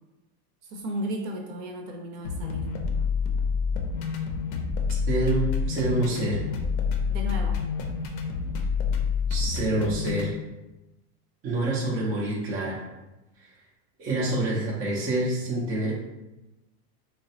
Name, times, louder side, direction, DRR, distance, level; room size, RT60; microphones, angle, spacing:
voice 1, 0.6-2.7 7.1-7.6, equal, 55° right, 2 dB, 0.7 m, -34 dB
sound 1, 2.2-10.3, left 6 dB, 50° left, 0.5 m, -28 dB
voice 2, 5.1-6.5 9.3-10.4 11.4-12.8 13.4-13.5 14.0-15.9, right 2 dB, 20° right, -4 dB, 0.3 m, -27 dB
3.2 x 2.1 x 2.6 m, 1.0 s
supercardioid pair, 130°, 46 cm